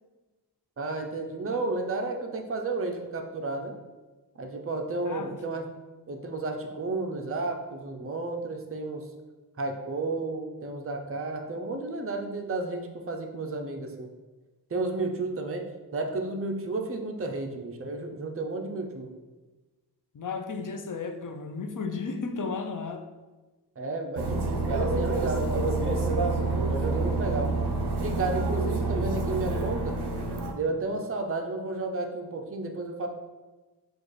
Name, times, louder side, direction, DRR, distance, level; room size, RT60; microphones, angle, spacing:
voice 1, 0.8-3.8 4.4-5.7 6.1-9.1 9.6-14.1 14.7-19.1 23.8-26.2 26.7-27.5 28.0-30.0 30.5-33.1, right 3 dB, 35° right, 3 dB, 0.5 m, -32 dB
voice 2, 5.0-5.4 20.1-23.0, left 4 dB, 50° left, 5 dB, 0.6 m, -34 dB
sound 1, 24.2-30.5, right 3 dB, 70° right, 0.7 m, -27 dB
6.2 x 2.4 x 3.2 m, 1.2 s
wide cardioid pair, 50°, 42 cm